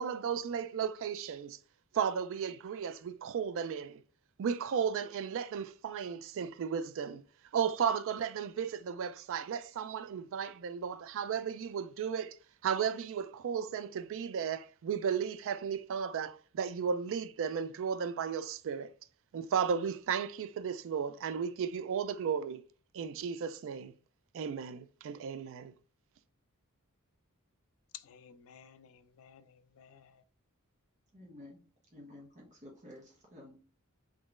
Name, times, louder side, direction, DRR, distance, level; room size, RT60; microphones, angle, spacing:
voice 1, 0.0-1.6 1.9-4.0 4.4-7.2 7.5-12.4 12.6-18.9 19.3-22.6 22.9-23.9 24.3-25.7, right 7 dB, 60° right, 0.3 m, -34 dB
voice 2, 27.9-30.2, left 9 dB, 65° left, 0.4 m, -54 dB
voice 3, 31.1-31.6 31.9-33.6, left 1 dB, 35° right, 1.0 m, -52 dB
3.7 x 3.1 x 2.4 m
head